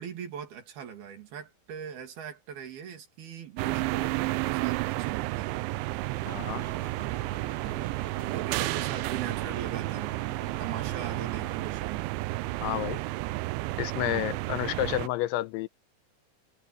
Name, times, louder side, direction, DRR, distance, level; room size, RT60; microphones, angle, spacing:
voice 1, 0.0-5.6 7.6-10.2 10.6-12.1 14.0-14.8, right 8 dB, 60° right, 4.2 m, -41 dB
sound 1, 3.6-15.1, right 20 dB, 85° right, 3.0 m, -31 dB
sound 2, 6.1-11.7, right 4 dB, 35° right, 1.1 m, -46 dB
voice 2, 6.3-6.7 12.6-13.0 13.8-15.7, left 15 dB, 80° left, 3.1 m, -30 dB
omnidirectional pair, 5.4 m